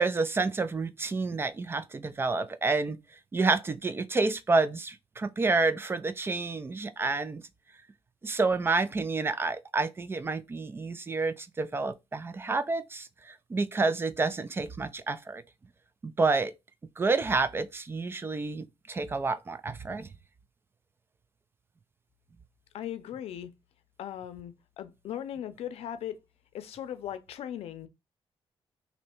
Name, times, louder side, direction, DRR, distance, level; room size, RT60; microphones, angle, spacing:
voice 1, 0.0-3.0 3.3-7.4 8.2-15.4 16.0-16.5 17.0-20.1, right 3 dB, 25° right, 0.4 m, -29 dB
voice 2, 22.7-23.5 24.0-26.2 26.5-27.9, left 10 dB, 90° left, 0.5 m, -38 dB
3.1 x 2.7 x 4.3 m
cardioid pair, 140°, 10 cm